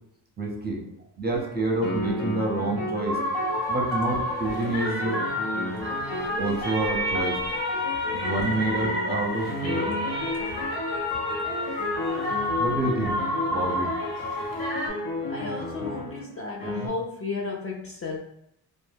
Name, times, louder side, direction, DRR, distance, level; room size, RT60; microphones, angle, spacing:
voice 1, 0.4-0.8 1.2-3.2 3.7-5.2 6.4-7.4 8.1-9.9 12.6-14.0, right 2 dB, 25° right, -1 dB, 0.6 m, -28 dB
sound 1, 1.3-1.5 1.8-16.2 16.6-16.9, left 1 dB, 90° left, 0.8 m, -33 dB
sound 2, 3.0-14.9, left 1 dB, 65° left, 1.0 m, -30 dB
voice 2, 15.3-18.2, left 4 dB, 35° left, -1 dB, 0.4 m, -33 dB
2.1 x 2.0 x 3.3 m, 0.74 s
cardioid pair, 75°, 44 cm